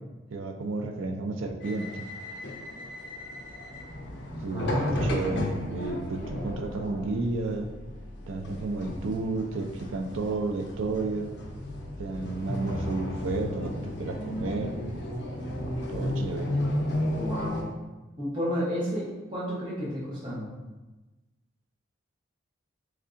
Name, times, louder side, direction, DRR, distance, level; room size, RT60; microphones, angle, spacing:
voice 1, 0.3-2.0 4.4-7.7 8.3-11.3 12.0-14.7 15.9-16.5, right 3 dB, 75° right, 5 dB, 0.4 m, -32 dB
sound 1, 1.6-17.6, left 1 dB, 55° left, 0.5 m, -34 dB
voice 2, 4.5-5.1 17.2-17.7 18.2-20.5, equal, 20° right, -10 dB, 0.9 m, -31 dB
3.6 x 3.2 x 2.5 m, 1.1 s
head